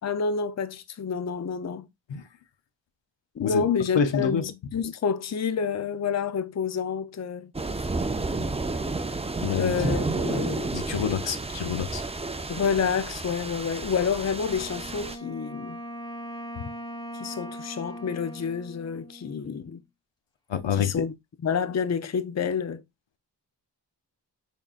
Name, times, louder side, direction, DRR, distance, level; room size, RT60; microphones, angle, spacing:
voice 1, 0.0-1.9 3.4-7.5 9.5-10.8 12.5-15.8 17.1-19.8 20.7-21.1 21.4-22.8, left 6 dB, 40° left, 0.5 m, -28 dB
voice 2, 3.9-4.4 9.4-9.7 10.1-10.2 10.7-12.0 16.6-16.7 20.5-21.0, left 7 dB, 85° left, 0.7 m, -27 dB
sound 1, 7.5-15.2, right 3 dB, 15° right, 0.4 m, -31 dB
Wind instrument woodwind instrument, 14.4-19.8, equal, 10° left, 0.9 m, -40 dB
5.3 x 3.7 x 2.4 m
wide cardioid pair, 80°, 43 cm